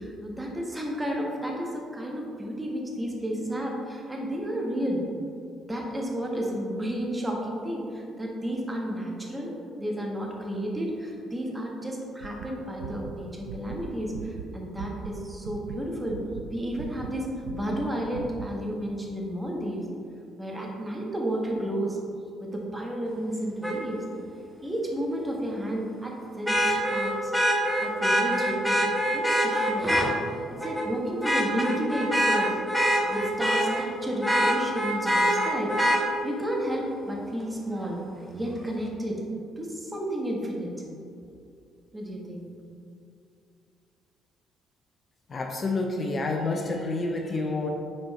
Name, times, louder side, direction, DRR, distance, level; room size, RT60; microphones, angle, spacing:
voice 1, 0.2-1.7 1.9-3.8 4.1-5.0 5.7-7.8 8.2-9.5 9.8-10.9 11.3-13.3 13.5-14.1 14.5-16.2 16.5-17.3 17.5-19.8 20.4-22.0 22.4-24.0 24.6-26.1 26.4-26.6 26.9-27.3 27.8-29.9 30.5-32.5 33.1-35.7 36.2-38.0 38.3-39.2 39.6-39.7 39.9-40.7 41.9-42.5, equal, 15° right, -2 dB, 1.5 m, -31 dB
sound 1, 12.2-15.1 15.4-17.9 18.1-18.5, right 7 dB, 80° right, 0.4 m, -40 dB
Vehicle horn car horn honking, 23.6-23.7 26.5-30.1 30.6-30.9 31.2-33.8 34.2-36.0 37.8-37.9, equal, 5° left, 1.3 m, -24 dB
voice 2, 45.3-47.7, left 3 dB, 40° left, 3 dB, 0.6 m, -28 dB
6.3 x 4.4 x 4.2 m, 2.5 s
hypercardioid pair, 50°, 0 cm